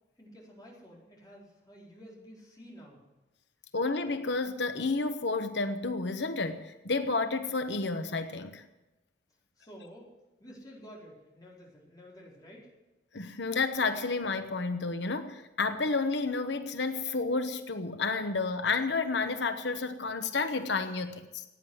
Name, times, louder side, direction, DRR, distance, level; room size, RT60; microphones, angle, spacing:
voice 1, 0.2-3.0 9.6-10.1 10.4-12.7, equal, 20° left, -4 dB, 4.5 m, -51 dB
voice 2, 3.7-8.6 13.1-21.4, left 3 dB, 75° left, 8 dB, 1.1 m, -31 dB
16.5 x 9.5 x 8.0 m, 1.0 s
head